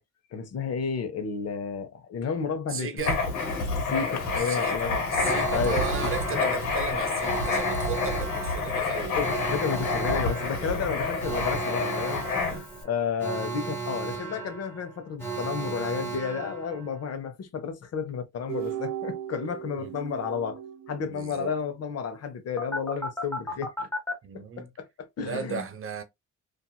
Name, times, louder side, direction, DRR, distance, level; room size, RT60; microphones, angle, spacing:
voice 1, 0.3-3.2 3.8-5.1 5.5-6.1 6.4-6.5 9.1-20.6 20.9-23.9 24.3-25.7, left 6 dB, 55° left, 0.8 m, -32 dB
voice 2, 2.7-3.2 4.4-9.2 10.2-10.3 10.6-10.8 12.4-12.6 19.8-19.9 21.0-21.5 24.2-24.7 25.2-26.0, right 6 dB, 45° right, 0.8 m, -35 dB
Writing, 3.0-12.8, left 4 dB, 90° left, 1.2 m, -28 dB
Alarm, 5.2-17.1 22.6-24.1, right 3 dB, 5° left, 1.2 m, -35 dB
sound 1, 18.5-21.7, right 10 dB, 65° right, 0.4 m, -37 dB
2.8 x 2.5 x 2.3 m
cardioid pair, 90°, 30 cm